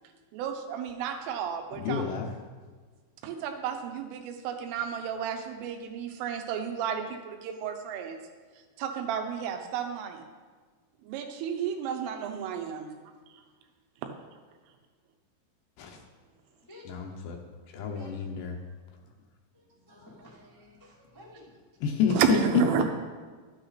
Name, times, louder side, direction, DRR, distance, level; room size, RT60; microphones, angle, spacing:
voice 1, 0.3-2.0 3.2-8.2 8.8-10.2 11.0-12.9 22.2-22.8, right 8 dB, 90° right, 5 dB, 3.6 m, -32 dB
voice 2, 1.8-2.3 15.8-16.0 16.9-17.4 17.7-18.6 21.8-22.4 22.8-22.9, left 7 dB, 75° left, 2 dB, 2.7 m, -29 dB
voice 3, 16.6-17.0 17.9-18.2 19.5-21.6, left 1 dB, 30° left, -7 dB, 0.3 m, -53 dB
12.5 x 9.7 x 4.1 m, 1.4 s
omnidirectional pair, 5.6 m